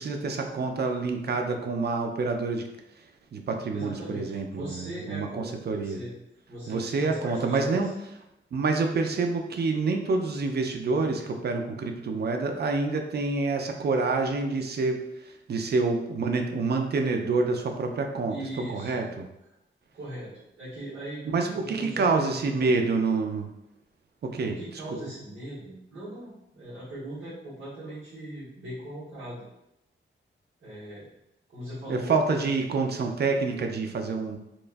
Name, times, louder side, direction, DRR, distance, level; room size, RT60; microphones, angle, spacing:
voice 1, 0.0-2.7 3.3-6.0 6.7-7.9 8.5-18.4 18.7-19.3 21.3-23.5 24.2-24.6 24.9-25.0 31.9-34.4, right 3 dB, 55° right, 4 dB, 0.4 m, -27 dB
voice 2, 3.7-6.1 6.5-7.8 18.3-18.9 19.9-22.7 24.4-29.5 30.6-31.0 31.5-32.2, right 1 dB, 80° right, -14 dB, 1.4 m, -39 dB
3.0 x 2.3 x 2.4 m, 0.87 s
wide cardioid pair, 90°, 20 cm